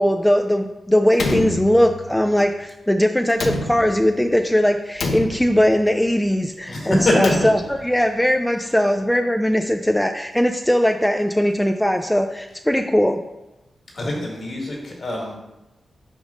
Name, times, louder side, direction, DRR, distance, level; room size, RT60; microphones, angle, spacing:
voice 1, 0.0-13.2, equal, 5° left, 4 dB, 0.3 m, -19 dB
Slam, 1.1-2.3 3.3-4.2 5.0-5.9 7.0-7.9, left 3 dB, 75° left, 0.7 m, -28 dB
voice 2, 6.7-7.3 13.9-15.3, left 1 dB, 50° left, -1 dB, 1.7 m, -23 dB
5.1 x 5.1 x 3.7 m, 0.99 s
wide cardioid pair, 95°, 0 cm